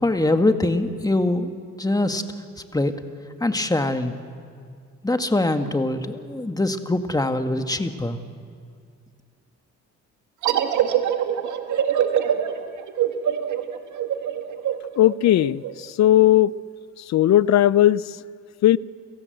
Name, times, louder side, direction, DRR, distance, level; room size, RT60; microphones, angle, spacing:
voice 1, 0.0-1.5 1.8-2.2 2.7-2.9 3.4-4.1 5.0-8.2, left 2 dB, 10° left, 7 dB, 1.8 m, -23 dB
sound 1, 10.4-15.7, right 9 dB, 75° right, 1.8 m, -24 dB
voice 2, 15.0-16.5 17.1-18.0 18.6-18.8, left 13 dB, 65° left, 20 dB, 0.6 m, -17 dB
29.5 x 17.5 x 8.0 m, 2.2 s
cardioid pair, 90°, 30 cm